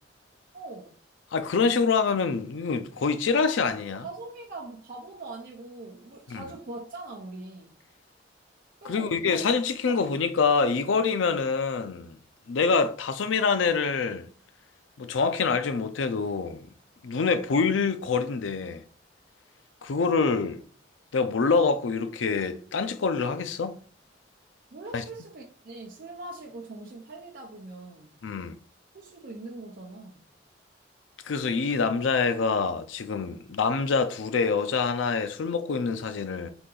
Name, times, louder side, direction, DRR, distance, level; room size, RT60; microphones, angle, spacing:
voice 1, 0.5-1.0 4.0-7.8 8.8-9.4 9.9-10.0 24.7-28.1 28.9-30.2, right 2 dB, 50° right, 0.6 m, -42 dB
voice 2, 1.3-4.1 6.3-6.4 8.8-12.2 12.5-14.3 15.0-16.7 17.0-18.8 19.8-20.6 21.1-23.8 24.9-25.0 28.2-28.5 31.3-36.5, left 5 dB, 90° left, 0.5 m, -26 dB
3.9 x 2.8 x 3.8 m
head